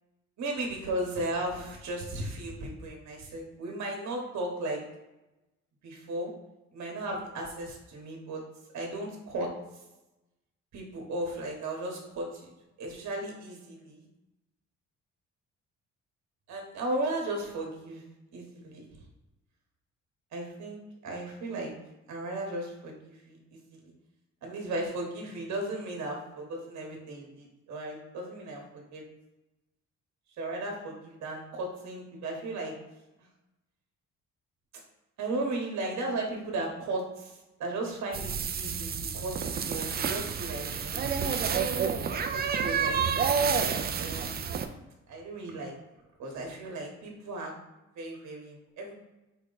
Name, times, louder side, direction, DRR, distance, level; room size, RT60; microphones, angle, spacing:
voice 1, 0.4-4.8 5.8-6.3 6.7-8.4 8.7-9.5 10.7-12.5 12.8-14.0 16.5-18.0 18.3-18.8 20.3-21.7 22.1-23.9 24.4-29.0 30.4-32.7 35.2-41.7 42.1-43.4 44.0-44.3 45.1-45.7 46.2-47.5 48.0-49.0, right 2 dB, 65° right, 1 dB, 1.1 m, -36 dB
sound 1, 38.1-44.7, right 6 dB, 35° right, 0.4 m, -29 dB
4.5 x 2.1 x 3.9 m, 0.99 s
cardioid pair, 90°, 30 cm